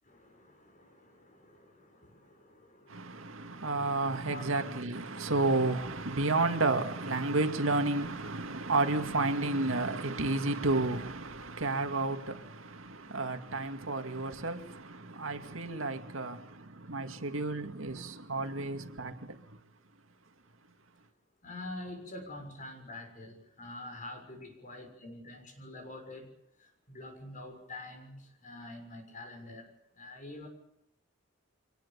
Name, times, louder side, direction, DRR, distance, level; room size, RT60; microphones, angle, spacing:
voice 1, 0.0-4.4 21.4-30.5, left 2 dB, 40° left, 6.6 m, -47 dB
voice 2, 2.9-19.6, right 2 dB, 80° right, 2.1 m, -31 dB
24.5 x 20.0 x 7.0 m
head